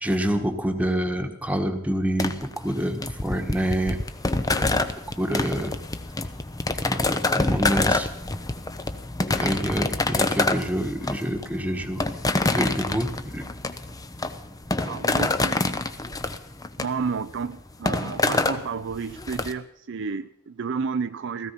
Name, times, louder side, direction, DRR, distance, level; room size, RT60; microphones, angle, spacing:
voice 1, 0.0-4.0 5.2-5.8 6.8-8.1 9.3-12.0 12.5-13.5, right 1 dB, 5° right, 5 dB, 1.4 m, -27 dB
sound 1, 2.2-19.5, left 2 dB, 15° left, 0.7 m, -27 dB
voice 2, 4.5-4.9 14.8-15.7 16.8-21.5, right 5 dB, 60° right, 11 dB, 0.5 m, -31 dB
17.0 x 14.5 x 5.8 m, 0.75 s
head